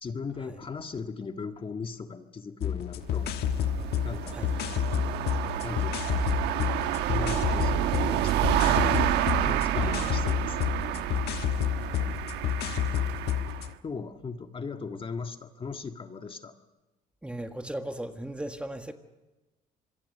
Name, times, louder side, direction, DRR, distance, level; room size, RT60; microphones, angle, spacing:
voice 1, 0.0-3.3 4.0-4.4 5.6-6.3 6.9-8.9 9.4-10.6 13.8-16.5, left 5 dB, 30° left, 6 dB, 1.7 m, -38 dB
sound 1, 2.6-13.7, left 11 dB, 70° left, 1.3 m, -30 dB
sound 2, 3.0-13.7, right 12 dB, 85° right, 1.2 m, -29 dB
voice 2, 9.8-10.2 17.2-18.9, right 1 dB, 5° right, 7 dB, 1.7 m, -37 dB
26.0 x 22.0 x 6.7 m, 1.1 s
cardioid pair, 110°, 17 cm